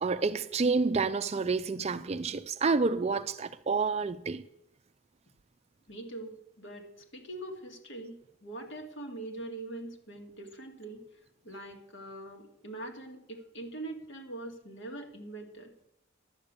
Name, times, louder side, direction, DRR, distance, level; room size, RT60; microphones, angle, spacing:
voice 1, 0.0-4.4, right 4 dB, 30° right, 0.4 m, -29 dB
voice 2, 5.9-11.0 11.4-15.7, right 2 dB, 60° left, 2.0 m, -43 dB
11.5 x 6.8 x 8.2 m
head